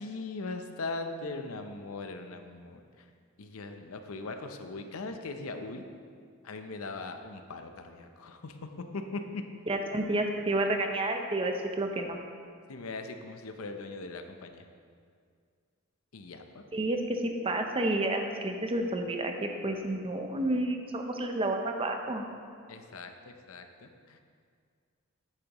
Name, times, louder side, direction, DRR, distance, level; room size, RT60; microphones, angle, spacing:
voice 1, 0.0-3.1 3.4-5.9 6.4-8.6 8.9-9.4 12.7-14.7 16.1-16.6 22.7-24.2, left 3 dB, 85° left, 6 dB, 0.7 m, -40 dB
voice 2, 9.7-12.2 16.7-22.2, right 1 dB, 25° right, 4 dB, 0.6 m, -30 dB
10.0 x 8.9 x 3.0 m, 2.2 s
head